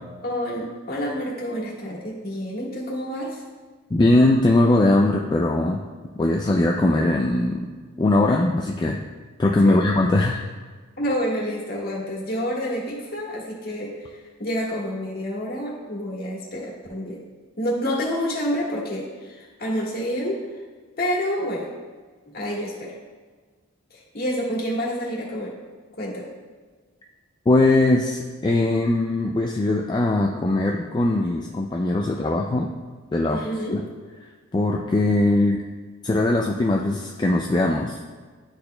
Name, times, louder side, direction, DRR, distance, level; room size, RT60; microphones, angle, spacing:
voice 1, 0.2-3.4 9.6-9.8 11.0-17.2 17.6-20.4 21.0-21.7 22.3-22.9 23.9-25.5 25.9-26.3 33.3-33.8, equal, 50° left, -4 dB, 1.5 m, -28 dB
voice 2, 3.9-5.8 6.2-7.7 8.0-9.0 9.4-10.4 27.5-32.7 33.1-33.8 34.5-35.6 36.0-38.0, left 2 dB, 20° left, 0 dB, 0.3 m, -20 dB
11.0 x 4.3 x 2.2 m, 1.4 s
head